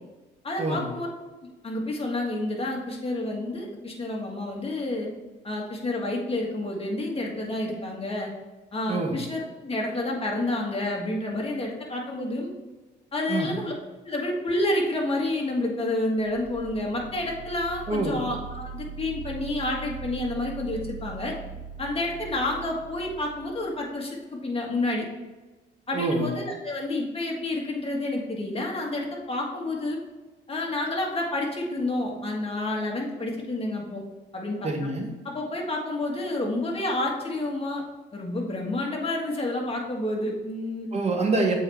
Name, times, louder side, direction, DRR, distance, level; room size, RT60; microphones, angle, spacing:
voice 1, 0.4-1.1 1.6-5.1 5.4-8.3 8.7-12.5 13.1-13.7 14.0-21.3 21.8-25.0 25.9-30.0 30.5-34.0 34.3-34.7 35.2-37.8 38.1-40.9, left 2 dB, 30° left, -1 dB, 1.7 m, -29 dB
voice 2, 8.9-9.2 13.3-13.5 17.9-18.3 25.9-26.3 34.6-35.1 40.9-41.5, right 3 dB, 30° right, 1 dB, 1.5 m, -26 dB
sound 1, 16.2-23.9, right 6 dB, 65° right, 2.0 m, -41 dB
7.5 x 4.5 x 3.4 m, 1.2 s
cardioid pair, 90°, 20 cm